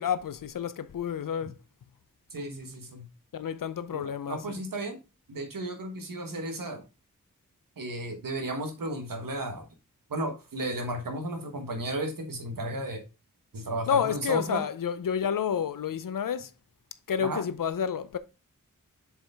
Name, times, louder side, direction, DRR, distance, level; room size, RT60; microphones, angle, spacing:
voice 1, 0.0-1.6 3.3-4.4 13.9-16.5 17.1-18.2, left 8 dB, 80° left, 0.6 m, -29 dB
voice 2, 2.3-3.0 3.9-5.0 5.3-6.8 7.8-9.7 10.1-13.0 13.5-14.6 17.2-17.4, right 1 dB, 85° right, 1.4 m, -34 dB
7.2 x 4.9 x 3.4 m
wide cardioid pair, 85°, 33 cm